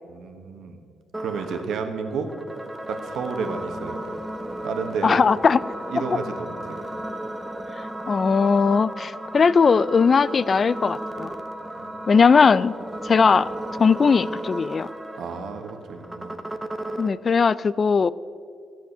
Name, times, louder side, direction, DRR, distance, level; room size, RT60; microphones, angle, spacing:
voice 1, 0.0-0.8 1.2-2.3 2.9-4.2 4.6-5.2 5.9-6.8 11.6-12.1 15.2-16.4, right 5 dB, 75° right, 6 dB, 1.4 m, -31 dB
sound 1, 1.1-17.1, right 1 dB, 10° right, 0.9 m, -34 dB
voice 2, 5.0-5.6 6.1-6.2 8.1-11.3 12.1-12.7 13.0-13.5 13.8-14.9 17.0-18.1, left 5 dB, 40° left, 19 dB, 0.4 m, -19 dB
13.5 x 9.2 x 6.7 m, 2.4 s
cardioid pair, 90°, 0 cm